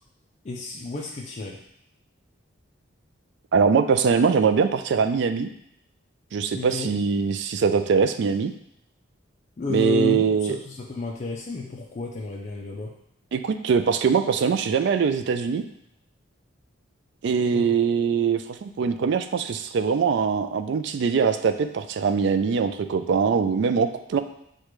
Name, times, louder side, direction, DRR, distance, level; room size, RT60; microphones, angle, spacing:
voice 1, 0.4-1.6 6.5-6.9 9.6-12.9 17.5-17.7, left 4 dB, 35° left, -1 dB, 0.4 m, -32 dB
voice 2, 3.5-5.5 6.3-8.5 9.7-10.6 13.3-15.6 17.2-24.2, right 6 dB, 60° right, 8 dB, 0.3 m, -22 dB
6.5 x 2.2 x 3.0 m, 0.73 s
head